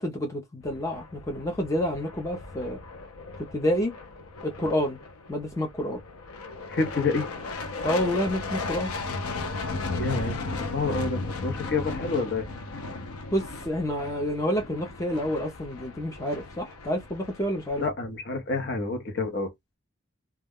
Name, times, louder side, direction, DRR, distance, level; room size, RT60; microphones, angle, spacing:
voice 1, 0.0-2.8 3.5-3.9 4.4-5.0 5.3-6.0 7.8-8.9 13.3-17.8, equal, 15° left, 0.4 m, -28 dB
sound 1, 0.6-17.9, left 3 dB, 90° left, 0.6 m, -36 dB
voice 2, 6.7-7.3 10.0-12.5 17.8-19.5, left 3 dB, 50° left, 0.7 m, -28 dB
2.3 x 2.1 x 3.4 m
head